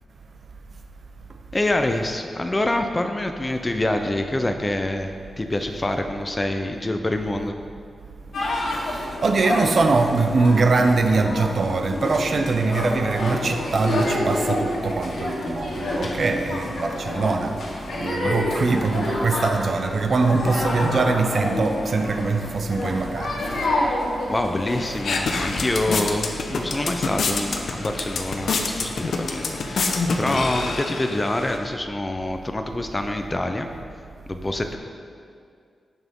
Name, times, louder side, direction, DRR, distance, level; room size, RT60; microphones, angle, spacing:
voice 1, 1.5-5.1 5.4-7.5 18.2-18.3 24.3-33.7 34.3-34.8, left 1 dB, 20° left, 5 dB, 0.6 m, -26 dB
sound 1, 8.3-24.9, left 1 dB, 90° left, 2.2 m, -28 dB
voice 2, 8.8-17.6 17.9-23.7, right 3 dB, 55° right, 5 dB, 0.8 m, -22 dB
sound 2, 24.7-31.6, left 3 dB, 75° left, 0.9 m, -27 dB
18.0 x 6.0 x 3.7 m, 2.3 s
wide cardioid pair, 125°, 0 cm